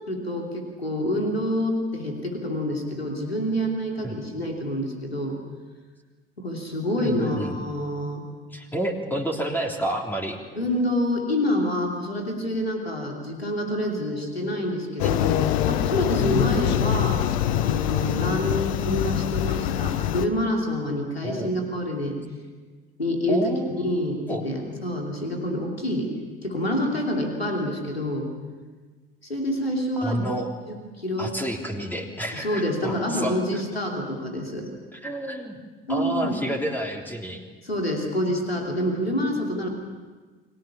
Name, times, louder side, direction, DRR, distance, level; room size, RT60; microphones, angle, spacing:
voice 1, 0.1-5.4 6.4-8.2 10.6-15.4 15.7-17.2 17.6-22.2 23.0-26.1 26.4-28.3 29.2-30.2 30.7-31.3 32.3-34.7 35.9-36.4 37.6-39.7, left 1 dB, 85° left, 1 dB, 3.0 m, -27 dB
voice 2, 7.0-7.6 8.5-10.4 15.0-15.3 21.2-21.5 23.3-23.8 24.3-24.4 30.0-30.5 31.2-33.6 34.9-35.6 35.9-37.4, right 1 dB, 5° left, 1 dB, 3.5 m, -29 dB
sound 1, 15.0-20.3, left 12 dB, 60° left, 1.1 m, -24 dB
30.0 x 23.5 x 7.1 m, 1.4 s
figure-of-eight pair, 60°, 30 cm